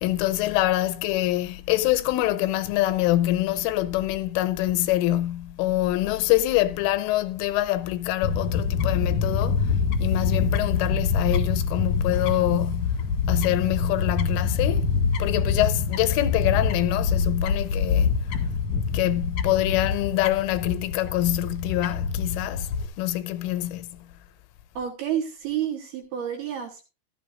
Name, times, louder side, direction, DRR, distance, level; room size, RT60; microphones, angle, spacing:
voice 1, 0.0-9.7 10.0-14.9 15.2-18.2 18.9-24.0, left 15 dB, 80° left, 3.2 m, -25 dB
Fowl / Bird, 8.2-22.9, left 5 dB, 60° left, 2.2 m, -25 dB
voice 2, 24.8-26.8, right 9 dB, 70° right, 2.6 m, -29 dB
15.5 x 12.5 x 2.5 m
omnidirectional pair, 5.8 m